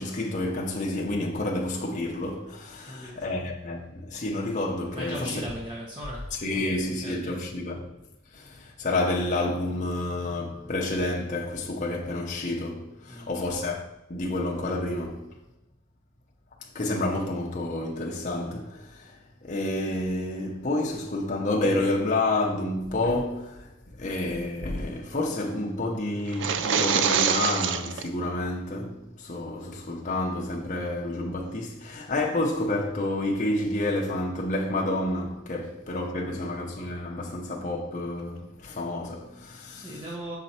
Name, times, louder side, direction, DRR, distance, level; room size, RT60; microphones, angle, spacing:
voice 1, 0.0-5.4 6.4-7.9 8.3-15.3 16.7-39.9, left 2 dB, 35° left, 0.8 m, -29 dB
voice 2, 2.8-3.3 4.9-6.7 7.0-7.4 13.1-13.3 36.2-36.4 39.7-40.4, equal, 20° right, 1.0 m, -38 dB
sound 1, 26.3-28.1, right 7 dB, 55° right, 0.4 m, -25 dB
6.9 x 4.4 x 4.2 m
head